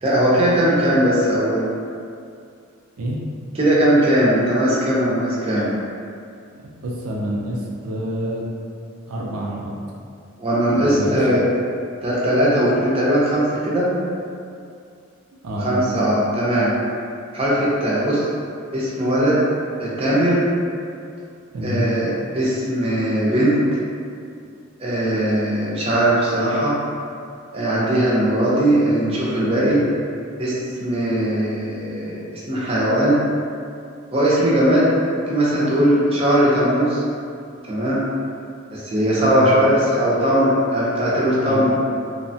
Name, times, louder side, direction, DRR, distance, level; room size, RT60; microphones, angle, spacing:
voice 1, 0.0-1.7 3.6-5.7 10.4-11.4 12.0-13.9 15.6-16.7 17.3-18.3 18.7-19.4 19.8-20.5 21.6-22.1 22.3-23.6 24.8-26.8 27.5-29.8 30.4-33.2 34.1-37.0 37.7-38.0 38.7-41.7, right 1 dB, 25° right, -7 dB, 0.5 m, -19 dB
voice 2, 6.5-8.5 9.1-9.7 10.7-11.2 15.4-15.9 21.5-21.9 29.6-29.8 39.1-39.5 41.4-41.7, equal, 85° right, -4 dB, 0.4 m, -27 dB
2.9 x 2.1 x 2.7 m, 2.4 s
head